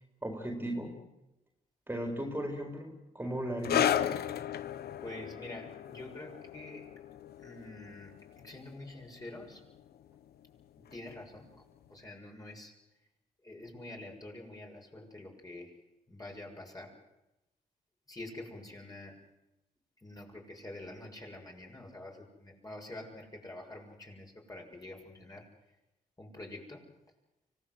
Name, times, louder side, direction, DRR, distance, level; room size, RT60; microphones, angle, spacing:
voice 1, 0.2-0.9 1.9-4.0, equal, 15° right, 2 dB, 4.3 m, -36 dB
sound 1, 3.6-10.6 10.9-11.1 11.9-12.0, left 10 dB, 80° left, 0.9 m, -35 dB
voice 2, 5.0-6.9 7.4-9.6 10.9-11.6 11.9-12.8 13.4-15.7 16.1-16.9 18.1-19.2 20.0-25.5 26.2-26.9, left 1 dB, 25° left, 0 dB, 7.1 m, -47 dB
25.0 x 18.5 x 8.1 m, 0.94 s
cardioid pair, 65°, 16 cm